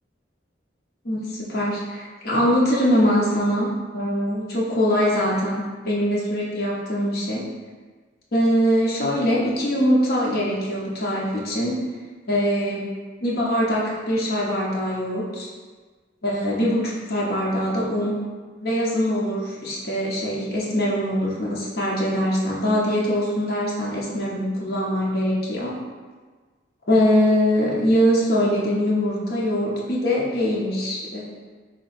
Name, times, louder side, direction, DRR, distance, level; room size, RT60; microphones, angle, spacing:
voice 1, 1.0-7.4 8.3-11.8 12.3-12.9 13.2-15.5 16.2-18.2 18.6-25.8 26.9-31.3, equal, 60° left, -5 dB, 0.9 m, -22 dB
3.9 x 3.1 x 4.2 m, 1.4 s
head